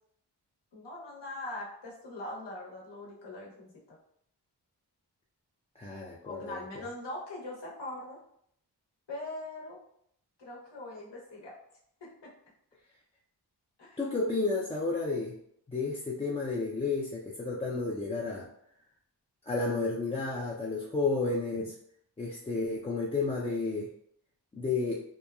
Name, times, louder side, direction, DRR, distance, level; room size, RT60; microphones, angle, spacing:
voice 1, 0.7-4.0 6.2-8.2 9.1-9.8 10.4-11.6 12.2-12.3 13.8-14.0, left 2 dB, 80° left, -4 dB, 0.9 m, -41 dB
voice 2, 5.8-6.8 14.0-15.4 15.7-18.5 19.5-21.7 22.2-23.9 24.5-25.0, left 3 dB, 15° left, -5 dB, 0.4 m, -31 dB
3.0 x 2.2 x 2.3 m, 0.69 s
wide cardioid pair, 65°, 41 cm